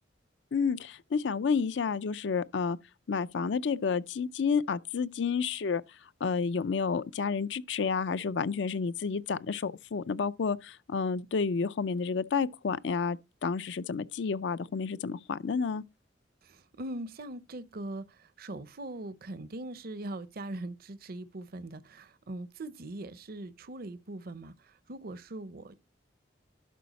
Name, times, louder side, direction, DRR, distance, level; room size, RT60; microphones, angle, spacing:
voice 1, 0.5-2.8 3.1-5.8 6.2-15.8, left 5 dB, 70° left, 0.4 m, -30 dB
voice 2, 16.4-25.8, right 1 dB, 50° right, 0.6 m, -41 dB
12.0 x 5.5 x 4.0 m
head